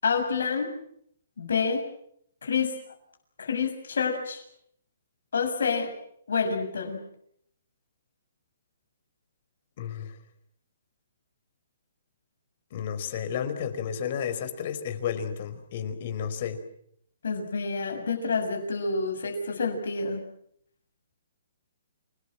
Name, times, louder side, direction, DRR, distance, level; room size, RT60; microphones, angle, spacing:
voice 1, 0.0-0.7 1.4-1.8 2.4-2.7 3.4-4.4 5.3-5.9 6.3-7.0 17.2-20.2, left 5 dB, 80° left, 3 dB, 6.7 m, -28 dB
voice 2, 9.8-10.1 12.7-16.6, left 8 dB, 45° left, 9 dB, 4.8 m, -32 dB
29.5 x 20.0 x 7.6 m, 0.69 s
hypercardioid pair, 160°, 0 cm